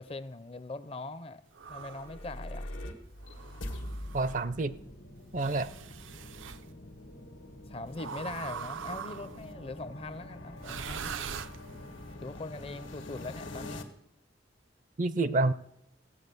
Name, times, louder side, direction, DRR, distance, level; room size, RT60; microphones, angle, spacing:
voice 1, 0.0-1.4 1.7-2.7 7.7-11.1 12.2-13.8, left 2 dB, 30° left, 0.5 m, -41 dB
sound 1, 1.5-2.2 3.2-4.4 5.4-6.6 7.9-9.5 10.6-12.0, right 7 dB, 85° right, 0.6 m, -42 dB
sound 2, 1.8-13.8, left 1 dB, 90° left, 1.7 m, -44 dB
voice 2, 4.1-4.8 5.3-5.7 15.0-15.5, right 2 dB, 40° right, 0.5 m, -28 dB
15.5 x 8.2 x 6.7 m
head